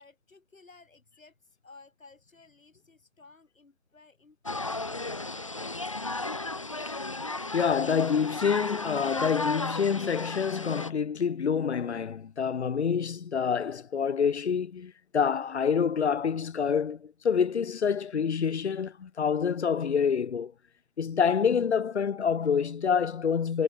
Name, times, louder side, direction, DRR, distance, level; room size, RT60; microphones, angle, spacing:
voice 1, 0.0-5.2, left 3 dB, 70° left, 4.7 m, -56 dB
sound 1, 4.5-10.9, left 2 dB, 25° left, 0.6 m, -34 dB
voice 2, 7.5-20.5 21.0-23.6, left 6 dB, 55° left, 0.9 m, -27 dB
figure-of-eight pair, 150°, 41 cm